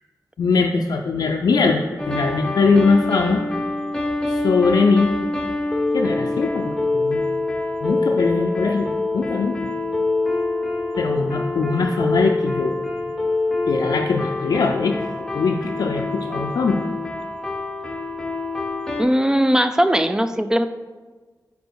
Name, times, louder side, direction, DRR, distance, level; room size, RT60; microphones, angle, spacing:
voice 1, 0.4-3.4 4.3-5.1 5.9-7.2 7.8-9.7 11.0-12.7 13.7-16.8, left 4 dB, 75° left, 1 dB, 0.4 m, -21 dB
sound 1, 2.0-19.0, left 2 dB, 10° left, 0.8 m, -25 dB
voice 2, 19.0-20.7, equal, 10° right, 10 dB, 0.4 m, -19 dB
5.1 x 4.6 x 4.7 m, 1.3 s
wide cardioid pair, 95°, 7 cm